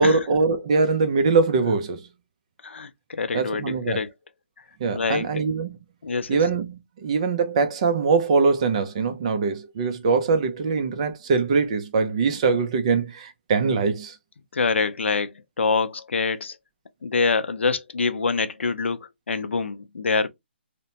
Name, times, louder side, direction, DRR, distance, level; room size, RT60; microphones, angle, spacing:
voice 1, 0.0-2.0 3.3-4.0 4.8-5.8 6.3-14.2, right 4 dB, 30° right, 0.5 m, -22 dB
voice 2, 2.6-4.1 4.9-5.3 6.0-6.4 14.5-16.6 17.0-20.3, left 4 dB, 85° left, 0.5 m, -25 dB
2.8 x 2.1 x 2.7 m
hypercardioid pair, 165°, 6 cm